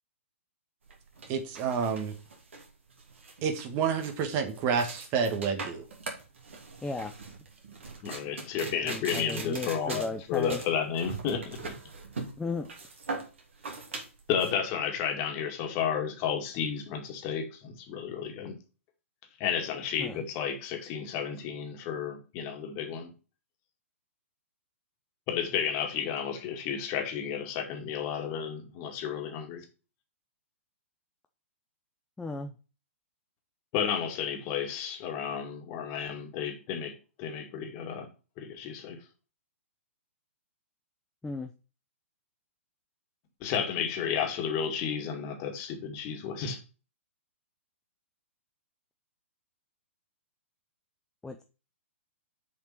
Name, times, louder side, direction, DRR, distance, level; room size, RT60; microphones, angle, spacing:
sound 1, 0.9-14.5, right 3 dB, 65° right, 2.9 m, -41 dB
voice 1, 1.3-2.1 3.4-5.8, right 6 dB, 30° right, 1.6 m, -29 dB
voice 2, 8.0-11.7 14.3-18.6 19.4-23.1 25.3-29.6 33.7-38.1 38.4-39.0 43.4-46.6, left 7 dB, 35° left, 2.2 m, -32 dB
voice 3, 8.8-10.6 12.4-12.7 20.0-20.2 32.2-32.5 41.2-41.5 51.2-51.4, left 3 dB, 5° left, 0.6 m, -35 dB
6.9 x 5.2 x 5.8 m
figure-of-eight pair, 115°, 7 cm